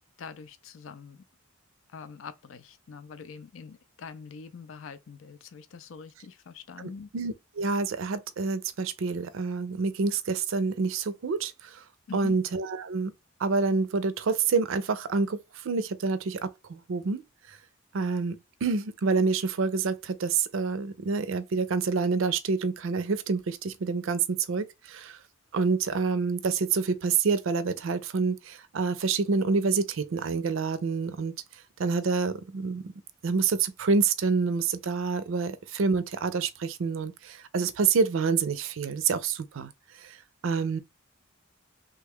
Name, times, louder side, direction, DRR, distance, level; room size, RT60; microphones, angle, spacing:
voice 1, 0.2-1.2 1.9-7.1 12.1-12.4, left 5 dB, 70° left, 0.4 m, -44 dB
voice 2, 7.1-11.8 12.1-13.1 13.4-17.2 17.5-17.6 17.9-25.2 25.5-31.3 31.8-32.8 33.2-39.7 40.0-40.2 40.4-40.8, right 4 dB, 70° right, 0.5 m, -27 dB
3.3 x 2.3 x 3.4 m
head